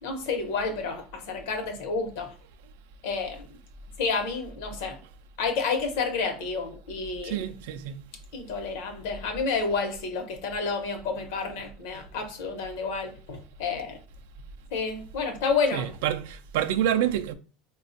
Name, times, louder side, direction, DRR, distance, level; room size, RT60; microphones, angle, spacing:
voice 1, 0.0-2.3 3.0-3.6 4.0-5.0 5.4-7.5 8.3-14.0 14.7-15.9, left 4 dB, 80° left, 0.8 m, -30 dB
voice 2, 7.2-8.0 15.7-17.3, right 10 dB, 85° right, 0.3 m, -27 dB
4.2 x 2.3 x 2.5 m
supercardioid pair, 145°, 0 cm